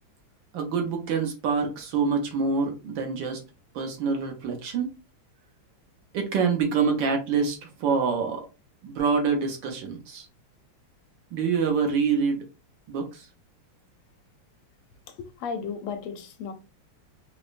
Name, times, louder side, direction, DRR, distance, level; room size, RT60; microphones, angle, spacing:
voice 1, 0.5-3.4 3.7-4.9 6.1-8.4 8.8-10.3 11.3-12.4 12.9-13.3, right 5 dB, 65° right, 1.4 m, -26 dB
voice 2, 15.1-16.5, left 6 dB, 90° left, 1.6 m, -34 dB
4.9 x 2.1 x 2.5 m
omnidirectional pair, 2.3 m